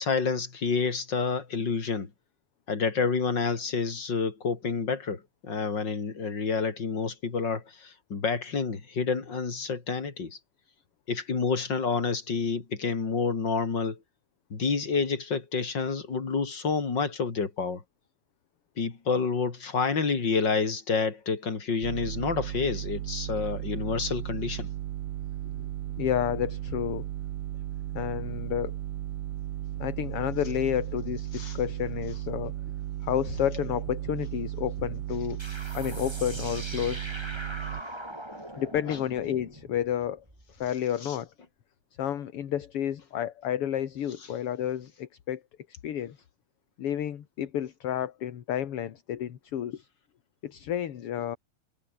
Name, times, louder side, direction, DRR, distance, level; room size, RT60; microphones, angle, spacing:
voice 1, 0.0-2.1 2.7-10.4 11.1-14.0 14.5-17.8 18.8-24.7 31.3-31.6 38.9-39.0 41.0-41.2, left 5 dB, 35° left, 3.8 m, -29 dB
sound 1, 21.8-37.8, right 13 dB, 70° right, 1.9 m, -35 dB
voice 2, 26.0-27.1 27.9-28.8 29.8-32.5 33.0-35.4 35.7-37.1 38.6-40.2 40.6-41.3 42.0-45.4 45.8-46.2 46.8-49.9 50.4-51.4, left 10 dB, 55° left, 2.2 m, -30 dB
sound 2, 35.4-40.7, right 1 dB, 10° right, 4.4 m, -41 dB
omnidirectional pair, 3.3 m